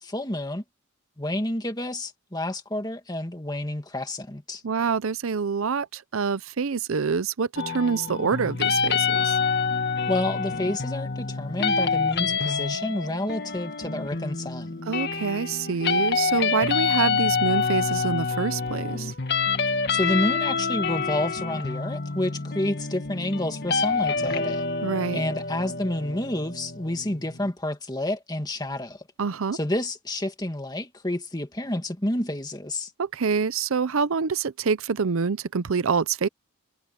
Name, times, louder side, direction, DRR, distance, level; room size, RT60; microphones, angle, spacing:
voice 1, 0.0-0.6 1.2-4.6 10.1-14.7 19.9-24.6 25.1-29.0 29.5-32.9, left 1 dB, 20° left, 2.0 m, -29 dB
voice 2, 4.6-9.4 14.9-19.1 24.8-25.2 29.2-29.6 33.0-36.3, right 5 dB, 65° right, 0.6 m, -26 dB
sound 1, 7.6-27.5, left 5 dB, 50° left, 1.8 m, -27 dB
head